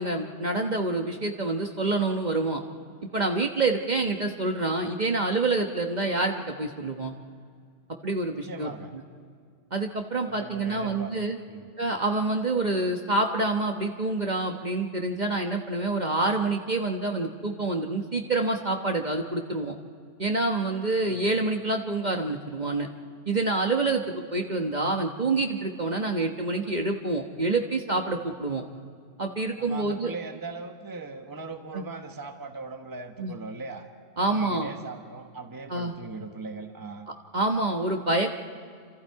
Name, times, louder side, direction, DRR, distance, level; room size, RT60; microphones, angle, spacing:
voice 1, 0.0-2.6 3.1-7.1 8.0-8.7 9.7-11.4 11.8-19.7 20.2-22.9 23.3-28.6 29.2-30.1 31.7-31.8 33.2-33.3 34.2-34.7 35.7-35.9 37.3-38.3, right 2 dB, 40° right, 3 dB, 1.2 m, -27 dB
voice 2, 8.4-8.9 10.3-11.2 11.5-11.7 21.1-21.3 23.8-23.9 28.5-28.6 29.6-33.9 34.3-37.1, right 3 dB, 20° right, 5 dB, 1.2 m, -39 dB
28.0 x 27.0 x 4.7 m, 2.2 s
omnidirectional pair, 1.3 m